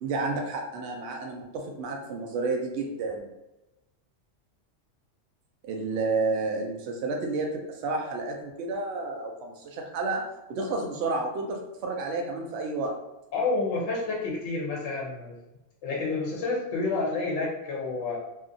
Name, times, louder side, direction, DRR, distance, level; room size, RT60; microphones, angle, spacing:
voice 1, 0.0-3.3 5.6-10.2 10.5-12.9, right 3 dB, 65° right, 2 dB, 0.8 m, -31 dB
voice 2, 13.3-15.3 15.8-18.2, left 3 dB, 70° left, -4 dB, 0.9 m, -29 dB
2.7 x 2.4 x 2.5 m, 0.96 s
omnidirectional pair, 1.3 m